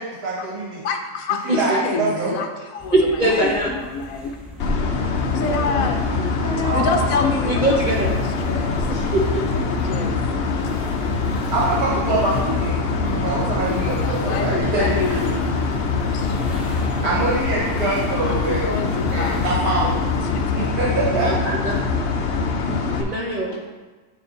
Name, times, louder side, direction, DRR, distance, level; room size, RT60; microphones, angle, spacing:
voice 1, 0.0-0.8 1.4-2.3 5.8-5.9 6.6-7.1 11.5-15.4 17.0-18.7 19.1-20.0 20.5-21.5, right 2 dB, 65° right, -6 dB, 1.8 m, -24 dB
voice 2, 0.8-4.4 5.3-6.4 6.7-8.9 9.5-10.1 13.2-15.5 16.1-16.4 18.2-19.4 20.4-20.5, left 4 dB, 65° left, 4 dB, 0.9 m, -28 dB
sound 1, 2.8-20.7, left 1 dB, ahead, 0.8 m, -41 dB
voice 3, 2.9-3.7 6.2-6.7 7.5-8.1 8.9-9.4 10.2-10.3 21.1-21.3 21.6-21.7 23.0-23.6, right 1 dB, 45° right, -3 dB, 0.6 m, -22 dB
sound 2, 4.6-23.0, left 4 dB, 90° left, 0.5 m, -23 dB
9.1 x 3.4 x 3.8 m, 1.3 s
omnidirectional pair, 1.8 m